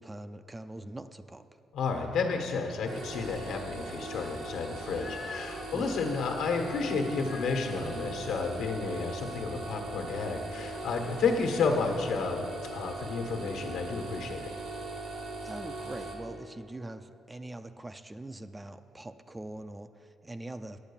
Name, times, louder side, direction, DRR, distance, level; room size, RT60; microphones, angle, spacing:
voice 1, 0.0-1.6 5.7-6.1 15.4-20.8, right 1 dB, 15° right, 10 dB, 0.4 m, -43 dB
voice 2, 1.7-14.5, left 4 dB, 80° left, 3 dB, 1.3 m, -31 dB
sound 1, 2.8-16.1, right 2 dB, 85° right, 2.2 m, -40 dB
sound 2, 4.6-5.7 7.1-8.1 10.9-11.6, left 5 dB, 45° left, 0.6 m, -46 dB
9.0 x 8.2 x 7.2 m, 2.7 s
cardioid pair, 90°, 0 cm